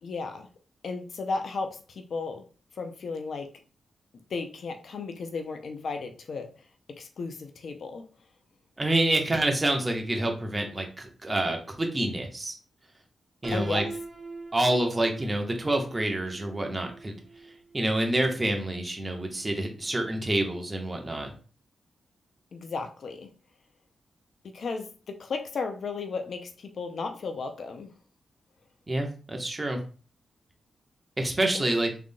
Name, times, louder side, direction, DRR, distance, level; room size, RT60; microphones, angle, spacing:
voice 1, 0.0-0.5 0.8-2.4 2.8-3.5 4.3-6.5 6.9-8.0 13.5-13.8 22.5-23.3 24.4-27.9 31.5-31.7, left 4 dB, 70° left, 6 dB, 0.6 m, -34 dB
voice 2, 8.8-12.5 13.4-13.8 14.5-17.2 17.7-21.3 28.9-29.8 31.2-31.9, right 1 dB, 25° right, 2 dB, 1.2 m, -27 dB
Piano, 13.4-19.3, right 3 dB, 55° right, 1.4 m, -43 dB
3.7 x 3.4 x 2.3 m, 0.37 s
supercardioid pair, 45°, 0 cm